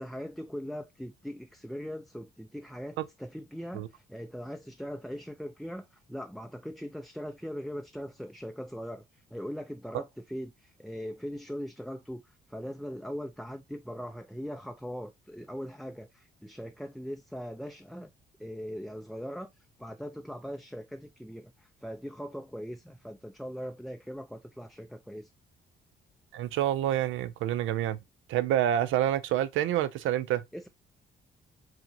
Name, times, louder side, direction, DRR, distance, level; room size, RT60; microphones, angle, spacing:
voice 1, 0.0-18.1 18.4-25.3 30.5-30.7, equal, ahead, 0.4 m, -40 dB
voice 2, 26.3-28.0 28.3-30.4, right 11 dB, 80° right, 0.4 m, -27 dB
4.8 x 2.9 x 2.6 m
cardioid pair, 90°, 20 cm